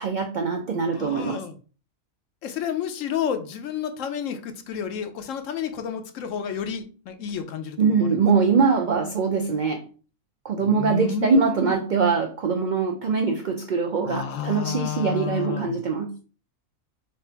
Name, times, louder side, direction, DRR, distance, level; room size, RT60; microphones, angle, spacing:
voice 1, 0.0-1.4 7.8-9.8 10.4-16.1, right 5 dB, 75° right, 3 dB, 0.4 m, -23 dB
voice 2, 0.9-1.5 2.4-8.1 10.6-11.7 14.1-15.8, left 8 dB, 75° left, 8 dB, 1.0 m, -30 dB
3.2 x 2.5 x 4.3 m, 0.37 s
omnidirectional pair, 1.4 m